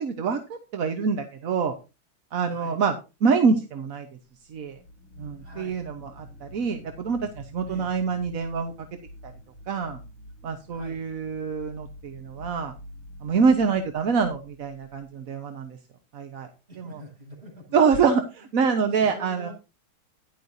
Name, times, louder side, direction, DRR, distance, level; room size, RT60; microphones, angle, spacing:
voice 1, 0.0-1.7 2.3-2.9 3.2-4.1 4.5-4.8 5.2-8.7 9.2-9.3 9.7-10.0 10.4-12.7 13.2-15.8 16.1-16.5 16.8-17.0 17.7-19.5, right 5 dB, 50° right, 6 dB, 1.2 m, -25 dB
voice 2, 2.4-2.8 5.4-5.8 7.6-7.9 10.7-11.0 13.6-13.8 16.7-18.1 18.4-18.5 18.9-19.5, equal, 30° right, -4 dB, 8.5 m, -45 dB
sound 1, 4.4-15.1, left 1 dB, 75° left, 8.6 m, -47 dB
14.0 x 10.5 x 2.7 m, 0.28 s
omnidirectional pair, 2.3 m